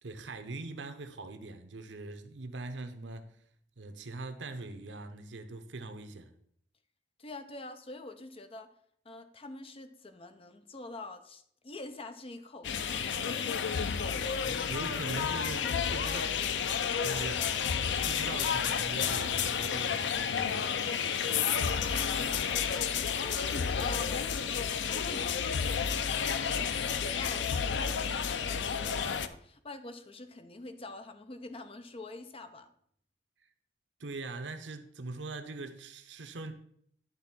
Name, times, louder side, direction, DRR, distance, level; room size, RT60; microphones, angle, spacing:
voice 1, 0.0-3.3 3.8-6.3 14.2-16.4 17.0-17.6 18.1-20.7 21.2-22.6 34.0-36.5, right 2 dB, 80° right, 0.8 m, -42 dB
voice 2, 7.2-8.7 9.0-13.1 23.0-25.7 26.1-32.7, left 2 dB, 30° left, 0.7 m, -46 dB
sound 1, 12.6-29.3, left 7 dB, 75° left, 0.5 m, -31 dB
10.5 x 3.6 x 5.9 m
head